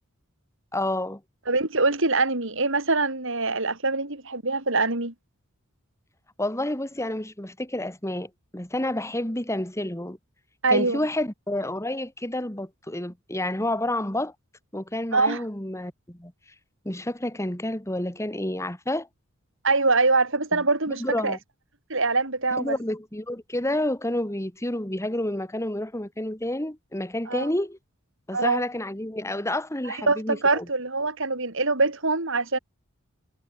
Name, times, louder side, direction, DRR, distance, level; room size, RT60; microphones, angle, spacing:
voice 1, 0.7-1.2 6.4-10.2 10.7-14.3 14.7-16.3 16.8-19.1 20.5-20.6 21.0-21.4 22.6-27.8 28.3-30.7, left 1 dB, 15° left, 2.5 m, -29 dB
voice 2, 1.5-5.1 10.6-11.0 15.1-15.4 19.6-21.4 21.9-22.8 27.3-27.5 28.3-28.6 30.1-32.6, right 3 dB, 60° right, 5.3 m, -24 dB
head